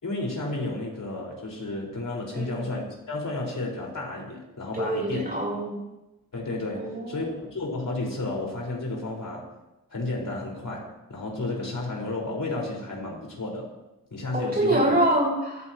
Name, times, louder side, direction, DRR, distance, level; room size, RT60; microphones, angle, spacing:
voice 1, 0.0-5.2 6.3-9.5 9.9-13.7 14.1-14.8, left 2 dB, 60° left, -2 dB, 4.9 m, -32 dB
voice 2, 4.7-5.8 6.7-7.3 14.3-15.7, right 1 dB, 25° right, -4 dB, 6.7 m, -25 dB
23.0 x 14.5 x 3.0 m, 1.0 s
wide cardioid pair, 130°, 36 cm